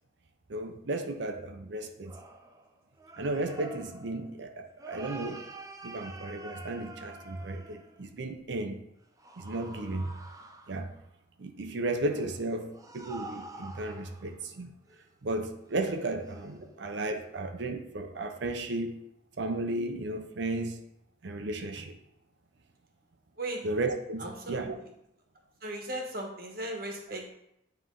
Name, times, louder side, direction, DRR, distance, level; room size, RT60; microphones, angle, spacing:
voice 1, 0.5-2.1 3.2-5.5 5.8-8.8 9.4-10.1 10.7-10.9 11.4-14.7 15.2-19.0 19.4-20.8 21.2-22.0 23.6-24.8, right 2 dB, 65° right, 5 dB, 0.6 m, -34 dB
sound 1, 2.0-8.1 9.2-11.0 12.1-14.5 14.9-15.0 15.7-15.9 16.2-16.6 17.1-17.3, right 2 dB, 20° right, 0.4 m, -47 dB
voice 2, 24.2-24.7 25.6-27.3, right 1 dB, 50° right, 2 dB, 1.1 m, -37 dB
9.3 x 3.2 x 3.8 m, 0.79 s
head